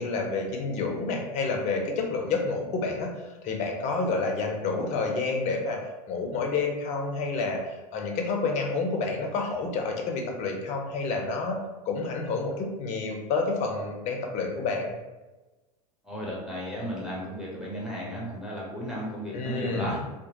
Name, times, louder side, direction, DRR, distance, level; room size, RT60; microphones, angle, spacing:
voice 1, 0.0-3.1 3.4-5.8 6.1-11.6 11.9-14.9 19.3-20.0, left 3 dB, 35° left, 2 dB, 0.6 m, -29 dB
voice 2, 16.0-20.0, equal, 5° right, -5 dB, 0.9 m, -34 dB
2.8 x 2.2 x 2.8 m, 1.1 s
figure-of-eight pair, 80°, 20 cm